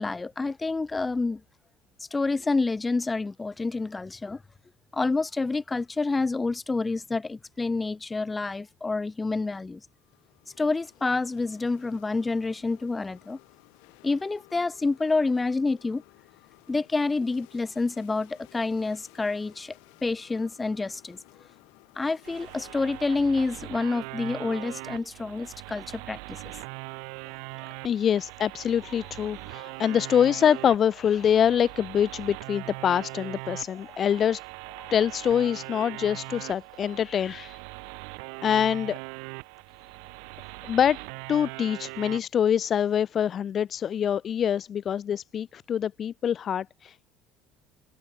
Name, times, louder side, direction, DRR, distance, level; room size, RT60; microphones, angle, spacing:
voice 1, 0.0-1.4 2.1-4.4 4.9-9.8 10.6-13.4 14.0-16.0 16.7-19.7 20.0-21.2 22.0-26.5, left 3 dB, 15° left, 1.6 m, -28 dB
sound 1, 9.8-23.6, left 40 dB or more, 85° left, 6.8 m, -56 dB
sound 2, 22.2-42.2, right 40 dB or more, 85° right, 1.2 m, -41 dB
voice 2, 27.8-34.4 34.7-37.6 38.4-39.0 40.7-41.0 41.3-47.1, left 9 dB, 35° left, 0.5 m, -25 dB
cardioid pair, 130°, 0 cm